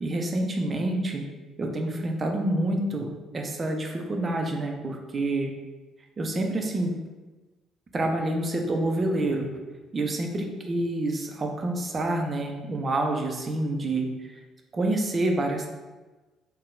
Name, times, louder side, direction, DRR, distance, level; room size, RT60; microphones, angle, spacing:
voice 1, 0.0-1.2 1.6-3.1 3.3-5.5 6.2-6.9 7.9-9.5 9.9-14.1 14.7-15.7, right 1 dB, 35° right, 3 dB, 0.6 m, -27 dB
3.6 x 2.3 x 3.6 m, 1.2 s
figure-of-eight pair, 50°, 0 cm